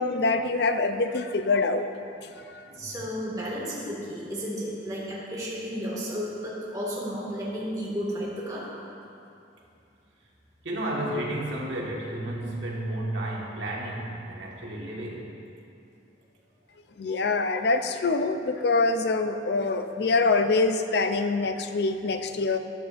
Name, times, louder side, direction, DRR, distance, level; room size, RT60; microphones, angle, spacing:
voice 1, 0.0-1.8 17.0-22.6, left 3 dB, 60° left, 7 dB, 0.5 m, -25 dB
voice 2, 2.6-8.7, equal, 20° right, -6 dB, 2.0 m, -33 dB
voice 3, 10.6-15.3, right 1 dB, 85° right, -3 dB, 1.7 m, -32 dB
13.5 x 10.0 x 2.6 m, 2.7 s
head